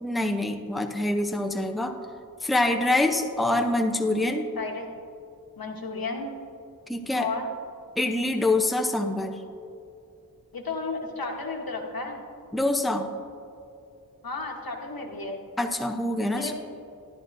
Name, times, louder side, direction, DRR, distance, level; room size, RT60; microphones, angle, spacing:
voice 1, 0.0-1.9 2.4-4.5 6.9-7.3 8.0-9.4 12.5-13.1 15.6-16.5, left 2 dB, ahead, 4 dB, 0.7 m, -25 dB
voice 2, 4.6-4.9 5.6-6.3 7.2-7.5 10.5-12.2 14.2-15.4 16.2-16.5, left 3 dB, 70° left, 1 dB, 1.3 m, -33 dB
13.0 x 11.5 x 2.6 m, 2.6 s
wide cardioid pair, 50°, 36 cm